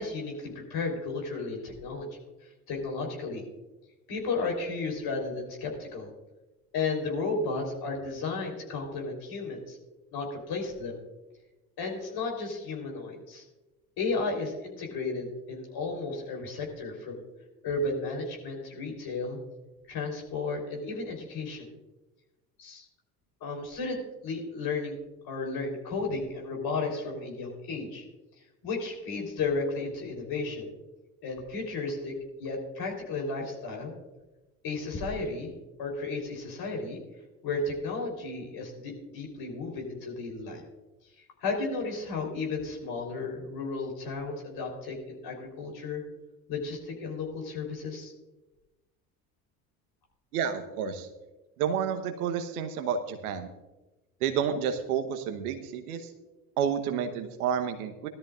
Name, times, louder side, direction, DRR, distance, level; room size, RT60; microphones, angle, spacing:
voice 1, 0.0-2.1 2.7-3.4 4.1-6.1 6.7-9.8 10.1-11.0 11.8-13.4 14.0-17.2 17.6-19.4 19.9-21.7 22.6-22.9 23.4-25.0 25.2-28.1 28.6-30.7 31.2-32.1 32.4-33.9 34.6-37.0 37.4-40.6 41.4-46.0 46.5-48.1, left 3 dB, 55° left, 1 dB, 3.9 m, -33 dB
voice 2, 50.3-51.1 51.6-53.5 54.2-56.1 56.6-58.1, right 7 dB, 75° right, 8 dB, 1.2 m, -30 dB
17.5 x 13.0 x 2.5 m, 1.1 s
hypercardioid pair, 60°, 44 cm